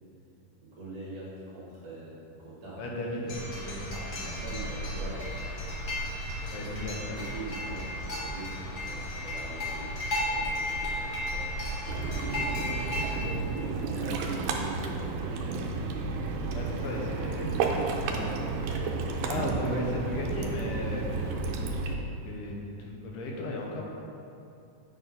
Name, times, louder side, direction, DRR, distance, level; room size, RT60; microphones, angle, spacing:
voice 1, 0.6-2.9 3.9-4.1 4.4-5.3 6.6-6.7 7.1-11.5 12.8-15.7, right 2 dB, 50° right, -7 dB, 2.6 m, -43 dB
voice 2, 2.8-3.8 4.1-4.3 6.5-7.2 13.1-13.6 16.5-18.5 19.2-21.3 21.9-22.0 22.2-23.8, left 1 dB, 75° left, -1 dB, 2.5 m, -36 dB
sound 1, 3.3-13.2, left 1 dB, 45° left, 1.4 m, -34 dB
Ocean, 11.9-22.0, right 4 dB, 80° right, 2.2 m, -32 dB
9.1 x 4.4 x 5.3 m, 2.7 s
omnidirectional pair, 3.7 m